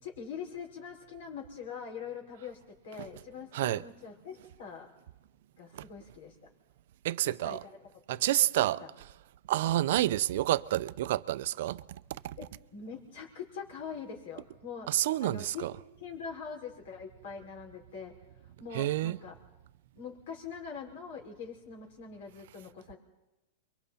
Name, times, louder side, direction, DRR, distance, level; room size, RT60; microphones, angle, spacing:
voice 1, 0.0-4.9 5.6-6.3 7.2-7.8 8.1-8.2 8.6-8.9 12.4-14.9 15.2-15.7 16.0-18.1 18.6-19.3 19.9-23.0, left 6 dB, 60° left, 5.6 m, -43 dB
voice 2, 7.0-7.6 8.1-8.8 9.5-11.8 12.2-12.4 14.9-15.7 18.7-19.2, right 14 dB, 55° right, 0.6 m, -29 dB
29.0 x 23.5 x 4.3 m
supercardioid pair, 170°, 0 cm